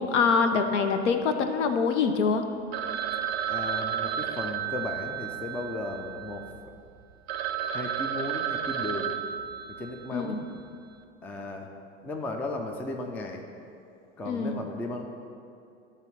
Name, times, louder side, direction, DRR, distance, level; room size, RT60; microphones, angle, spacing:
voice 1, 0.0-2.4 10.1-10.4 14.3-14.6, left 5 dB, 65° left, 7 dB, 0.8 m, -25 dB
Telephone, 2.7-6.5 7.0-7.1 7.3-10.2, right 9 dB, 55° right, 0.6 m, -32 dB
voice 2, 3.5-6.5 7.7-9.2 9.7-10.4 11.2-11.7 12.0-13.4 14.2-15.1, left 2 dB, 5° left, 2 dB, 0.3 m, -35 dB
12.0 x 4.0 x 4.1 m, 2.6 s
figure-of-eight pair, 80°, 38 cm